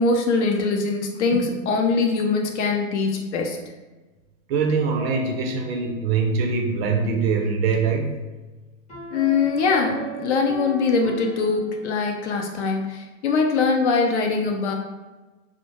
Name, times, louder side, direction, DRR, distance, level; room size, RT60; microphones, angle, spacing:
voice 1, 0.0-3.6 9.1-14.7, left 4 dB, 60° left, 2 dB, 0.6 m, -22 dB
voice 2, 4.5-8.2, right 5 dB, 50° right, 2 dB, 0.5 m, -23 dB
sound 1, 4.7-6.4 8.9-12.1, right 2 dB, 15° left, 0.6 m, -37 dB
2.2 x 2.1 x 2.8 m, 1.2 s
hypercardioid pair, 125°, 39 cm